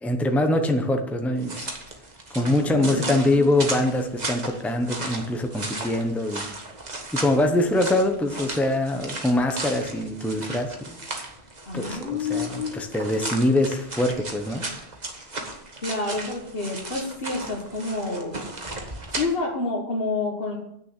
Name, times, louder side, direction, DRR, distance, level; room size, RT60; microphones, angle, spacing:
voice 1, 0.0-1.7 2.3-6.4 7.1-11.0 11.7-14.6, left 1 dB, ahead, 5 dB, 0.9 m, -24 dB
sound 1, 1.4-19.2, right 2 dB, 40° right, 1.6 m, -35 dB
voice 2, 2.4-3.5 11.7-12.7 15.8-18.3 19.1-20.6, left 3 dB, 60° left, -2 dB, 1.7 m, -29 dB
9.2 x 6.7 x 7.5 m, 0.75 s
omnidirectional pair, 1.1 m